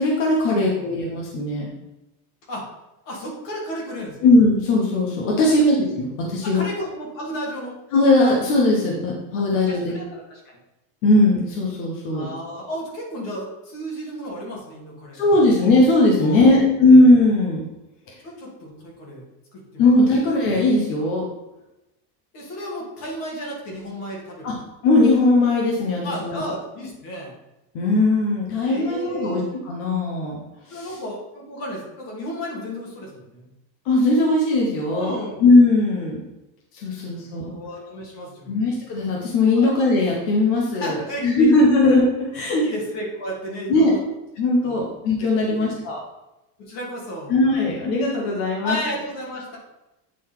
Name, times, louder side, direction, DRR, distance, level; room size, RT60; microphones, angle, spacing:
voice 1, 0.0-1.7 4.2-6.6 7.9-9.9 11.0-12.3 15.1-17.6 19.8-21.2 24.4-24.5 24.8-26.4 27.7-30.4 30.7-30.9 33.9-35.1 35.4-36.2 36.7-37.5 38.5-42.7 43.7-43.9 44.4-46.0 47.3-48.8, left 2 dB, 25° left, -2 dB, 0.3 m, -18 dB
voice 2, 3.0-4.3 5.5-5.6 6.4-7.8 9.7-10.6 12.1-15.2 16.1-16.8 18.2-19.2 19.5-19.8 22.3-24.5 26.0-27.4 28.6-29.5 30.7-33.5 34.9-35.4 37.4-38.7 39.5-39.7 40.7-41.5 42.6-44.0 44.6-44.8 45.2-45.7 46.6-47.3 48.6-49.6, equal, 40° left, -3 dB, 2.3 m, -33 dB
8.2 x 3.7 x 4.3 m, 0.95 s
cardioid pair, 180°, 50 cm